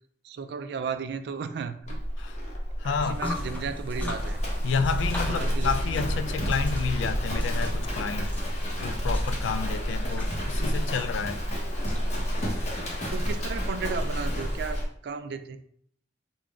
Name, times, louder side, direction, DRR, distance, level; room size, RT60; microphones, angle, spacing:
voice 1, 0.2-2.0 2.8-4.4 5.2-6.3 13.1-15.6, right 5 dB, 60° right, 0.3 m, -35 dB
Livestock farm animals working animals, 1.8-14.9, equal, 40° left, 0.9 m, -30 dB
voice 2, 2.8-3.2 4.6-8.3 8.8-11.4, left 5 dB, 80° left, 0.3 m, -30 dB
sound 1, 3.1-14.8, equal, 10° left, 0.6 m, -37 dB
3.7 x 2.2 x 3.5 m
head